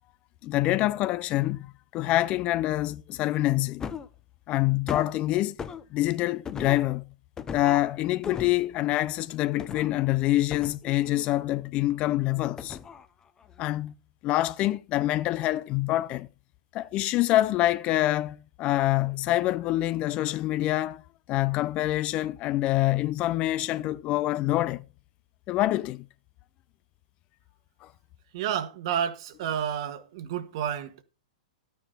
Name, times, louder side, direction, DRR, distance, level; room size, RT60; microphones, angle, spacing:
voice 1, 0.4-3.8 4.5-5.6 5.9-7.1 7.5-12.8 13.6-13.9 14.2-16.3 16.7-21.0 21.3-24.8 25.5-26.1 27.8-27.9, left 16 dB, 35° left, 0.6 m, -26 dB
sound 1, 3.8-4.2 4.9-5.1 5.6-5.8 6.4-6.9 7.4-7.9 8.2-8.6 9.6-9.9 10.5-11.3 12.6-13.1 13.4-13.5, left 7 dB, 20° left, 0.9 m, -36 dB
voice 2, 28.3-31.0, right 9 dB, 50° right, 1.6 m, -30 dB
13.5 x 9.6 x 4.2 m
figure-of-eight pair, 105°, 4 cm